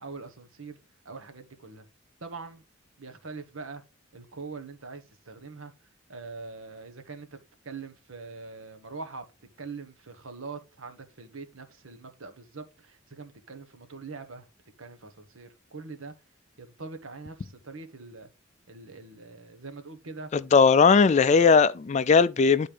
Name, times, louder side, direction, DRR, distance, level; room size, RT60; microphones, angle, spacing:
voice 1, 0.0-0.8 1.0-1.8 2.2-2.6 3.0-3.8 4.1-5.7 6.1-7.4 7.6-9.2 9.6-14.5 14.8-16.1 16.6-18.3 18.7-20.3, right 4 dB, 85° right, 1.3 m, -43 dB
voice 2, 20.3-22.7, left 5 dB, 35° left, 0.3 m, -19 dB
10.5 x 4.3 x 3.3 m
head